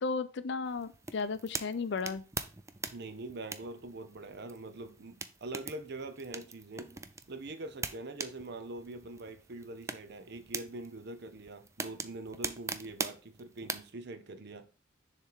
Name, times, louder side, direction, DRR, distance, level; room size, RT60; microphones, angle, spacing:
voice 1, 0.0-2.2, left 4 dB, 65° left, 0.5 m, -34 dB
sound 1, 0.7-13.9, right 4 dB, 15° right, 0.3 m, -43 dB
voice 2, 2.9-6.9 7.3-14.7, right 2 dB, 60° right, 0.7 m, -43 dB
6.8 x 3.3 x 4.5 m
head